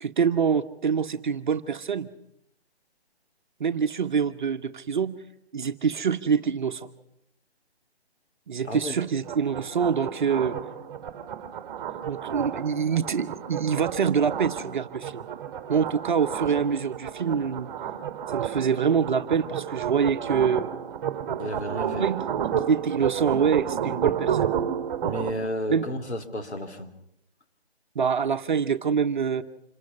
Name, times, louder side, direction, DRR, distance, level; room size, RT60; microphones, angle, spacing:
voice 1, 0.0-2.1 3.6-5.2 5.5-6.9 8.5-10.6 12.1-15.3 15.7-17.7 18.3-20.7 22.0-22.3 22.7-24.5 25.7-25.9 27.9-29.4, right 6 dB, 45° right, 7 dB, 1.0 m, -25 dB
sound 1, 9.3-25.3, right 8 dB, 25° right, 2.0 m, -31 dB
voice 2, 21.4-22.1 25.0-26.9, equal, 90° left, 7 dB, 3.5 m, -32 dB
27.0 x 11.5 x 9.8 m, 0.80 s
hypercardioid pair, 160°, 33 cm